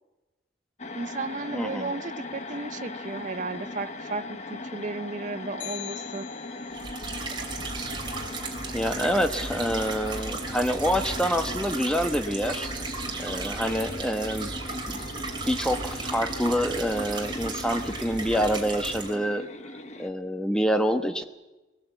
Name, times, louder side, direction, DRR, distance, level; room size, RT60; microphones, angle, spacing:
sound 1, 0.8-20.1, left 2 dB, 35° left, 1.2 m, -39 dB
voice 1, 0.9-6.3, right 3 dB, 40° right, 14 dB, 0.6 m, -34 dB
voice 2, 1.5-2.0 8.7-12.7 13.2-14.5 14.9-15.0 15.5-19.4 20.0-21.2, equal, 5° left, 7 dB, 1.1 m, -27 dB
sound 2, 5.6-7.0, left 14 dB, 70° left, 1.0 m, -41 dB
sound 3, 6.7-19.2, right 3 dB, 25° right, 2.8 m, -35 dB
20.5 x 18.5 x 8.1 m, 1.1 s
head